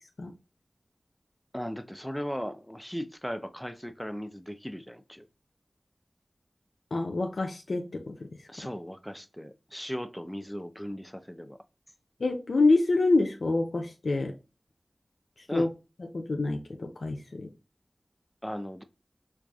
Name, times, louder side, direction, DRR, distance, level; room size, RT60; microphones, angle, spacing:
voice 1, 1.5-5.3 8.5-11.6 15.5-15.7 18.4-18.8, equal, 5° left, 0.5 m, -37 dB
voice 2, 6.9-8.3 12.2-14.3 15.5-15.7 16.1-17.5, left 3 dB, 85° left, 0.5 m, -26 dB
4.7 x 2.5 x 2.3 m
wide cardioid pair, 45°, 0 cm